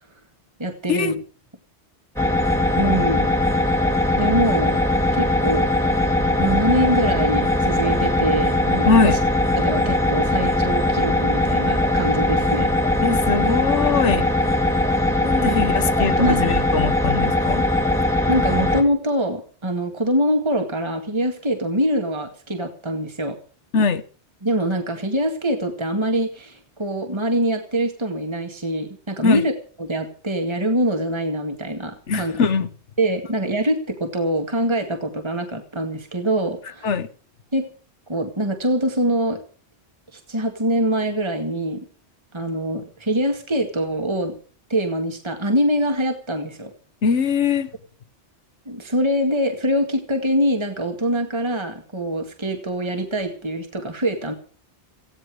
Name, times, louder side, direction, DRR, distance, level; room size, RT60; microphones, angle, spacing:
voice 1, 0.6-1.2 2.8-3.3 4.2-4.8 5.1-5.7 6.4-9.2 9.6-12.7 15.4-15.6 16.2-16.5 18.3-23.4 24.4-29.5 29.8-32.4 33.0-36.9 37.5-37.6 38.1-39.4 40.1-41.9 42.3-44.3 44.7-46.7 48.7-54.3, right 1 dB, 25° right, 2.1 m, -24 dB
sound 1, 2.2-18.8, left 1 dB, ahead, 2.4 m, -20 dB
voice 2, 8.9-9.2 13.0-14.3 15.2-17.7 23.7-24.0 29.2-29.4 32.1-32.7 36.8-37.1 47.0-47.7, left 5 dB, 90° left, 1.4 m, -21 dB
18.5 x 16.0 x 4.9 m
omnidirectional pair, 1.2 m